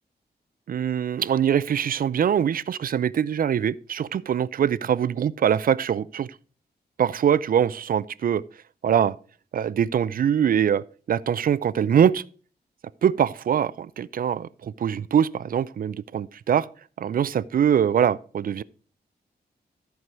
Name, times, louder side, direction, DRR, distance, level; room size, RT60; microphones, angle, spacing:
voice 1, 0.7-6.4 7.0-8.4 8.8-9.1 9.5-12.2 13.0-16.7 17.0-18.6, right 8 dB, 60° right, 0.4 m, -23 dB
14.0 x 4.6 x 4.7 m
wide cardioid pair, 100°, 17 cm